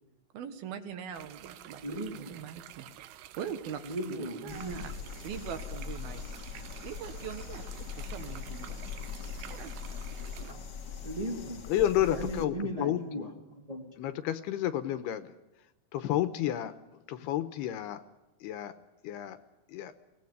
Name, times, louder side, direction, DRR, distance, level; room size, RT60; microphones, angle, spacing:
voice 1, 0.3-2.9 3.4-3.8 4.1-4.9 5.2-6.2 6.8-7.6 8.0-8.8 9.5-9.7, right 8 dB, 65° right, 9 dB, 3.1 m, -41 dB
sound 1, 1.1-10.5, right 13 dB, 90° right, 3.2 m, -50 dB
voice 2, 1.8-2.2 3.8-4.8 10.4-10.6 11.0-11.6 12.1-13.8, equal, 45° right, 0 dB, 0.4 m, -37 dB
sound 2, 4.5-12.4, left 6 dB, 50° left, 1.3 m, -41 dB
voice 3, 11.7-13.3 14.0-15.3 15.9-18.0 18.4-18.7 19.0-19.4 19.7-19.9, left 12 dB, 75° left, 12 dB, 2.8 m, -31 dB
23.0 x 18.0 x 9.6 m, 1.0 s
omnidirectional pair, 4.9 m